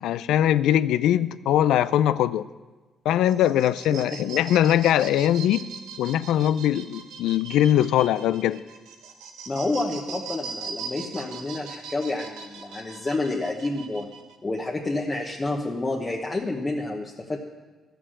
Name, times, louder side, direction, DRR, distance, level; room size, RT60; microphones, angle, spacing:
voice 1, 0.0-2.5 3.1-5.6 6.0-8.6, left 11 dB, 85° left, 16 dB, 0.3 m, -21 dB
sound 1, 3.1-14.4, right 5 dB, 90° right, 1.1 m, -40 dB
voice 2, 9.5-14.1 14.4-17.4, left 2 dB, 25° left, -1 dB, 1.1 m, -29 dB
12.5 x 6.8 x 7.4 m, 1.3 s
cardioid pair, 90°, 0 cm